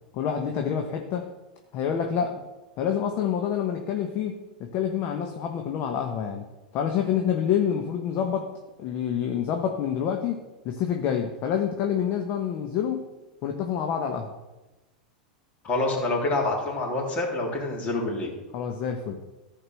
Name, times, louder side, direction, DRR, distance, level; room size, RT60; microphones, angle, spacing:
voice 1, 0.1-1.3 1.7-2.4 2.8-6.5 6.7-8.5 8.8-13.0 13.4-14.3 18.5-19.2, left 8 dB, 45° left, 4 dB, 1.2 m, -27 dB
voice 2, 15.6-18.3, left 2 dB, 30° left, -2 dB, 3.8 m, -27 dB
14.0 x 5.1 x 6.3 m, 1.1 s
hypercardioid pair, 95°, 5 cm